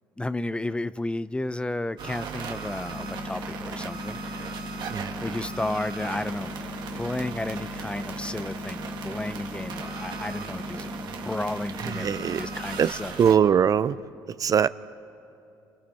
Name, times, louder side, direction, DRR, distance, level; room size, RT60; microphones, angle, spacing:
voice 1, 0.2-4.5 5.2-6.5 6.9-13.1, left 2 dB, 10° left, 15 dB, 0.5 m, -33 dB
sound 1, 2.0-13.3, right 6 dB, 65° right, 2.3 m, -37 dB
sound 2, 2.9-12.9, left 4 dB, 30° left, 1.7 m, -39 dB
voice 2, 11.8-12.4 12.8-12.9 13.2-14.0 14.4-14.7, right 8 dB, 45° right, 16 dB, 0.5 m, -21 dB
28.5 x 28.5 x 4.3 m, 2.6 s
supercardioid pair, 85°, 9 cm